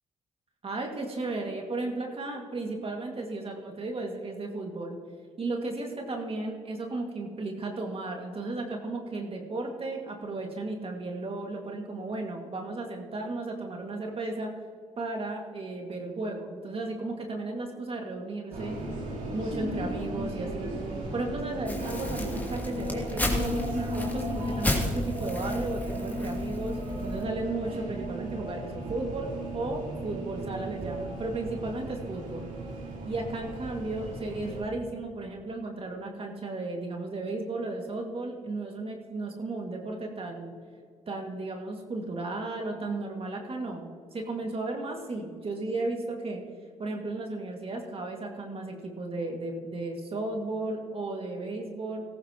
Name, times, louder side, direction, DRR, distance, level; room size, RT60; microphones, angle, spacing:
voice 1, 0.6-5.0 5.4-14.5 15.0-18.8 19.3-20.7 21.1-32.5 33.0-40.5 41.1-46.4 46.8-52.0, right 2 dB, 45° right, 1 dB, 2.2 m, -34 dB
sound 1, 18.5-34.6, right 1 dB, 80° right, 3.9 m, -35 dB
Crumpling crinkling, 21.7-27.3, left 1 dB, 15° left, 2.7 m, -33 dB
17.5 x 14.0 x 3.0 m, 2.1 s
cardioid pair, 75°, 14 cm